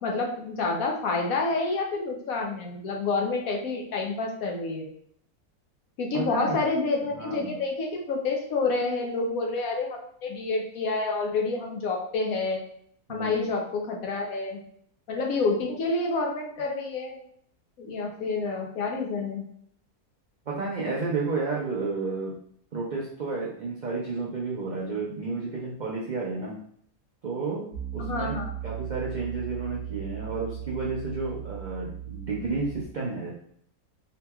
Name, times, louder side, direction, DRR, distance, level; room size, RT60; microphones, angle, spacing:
voice 1, 0.0-4.9 6.0-12.6 13.1-14.6 15.1-17.2 17.8-19.4 28.0-28.5, left 3 dB, 70° left, 1 dB, 1.1 m, -28 dB
voice 2, 6.1-6.6 7.1-7.5 13.1-13.5 20.5-22.3 22.7-26.6 27.2-28.3 28.6-33.4, right 3 dB, 70° right, -4 dB, 0.4 m, -31 dB
Piano, 27.7-32.8, right 12 dB, 10° left, 0.8 m, -37 dB
3.8 x 2.9 x 2.2 m, 0.65 s
omnidirectional pair, 1.6 m